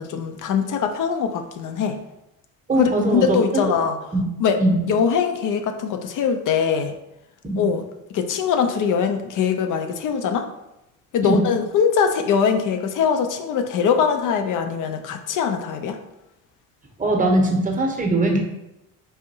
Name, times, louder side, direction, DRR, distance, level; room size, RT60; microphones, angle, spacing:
voice 1, 0.0-2.0 2.7-4.0 4.4-4.6 4.9-7.0 7.6-7.8 8.1-10.5 11.1-16.0, left 6 dB, 55° left, 6 dB, 0.5 m, -22 dB
voice 2, 2.7-3.8 4.1-4.2 4.6-4.8 7.4-7.7 11.2-11.4 17.0-18.4, right 1 dB, 20° right, 2 dB, 0.8 m, -21 dB
3.4 x 2.6 x 2.7 m, 0.89 s
hypercardioid pair, 60°, 38 cm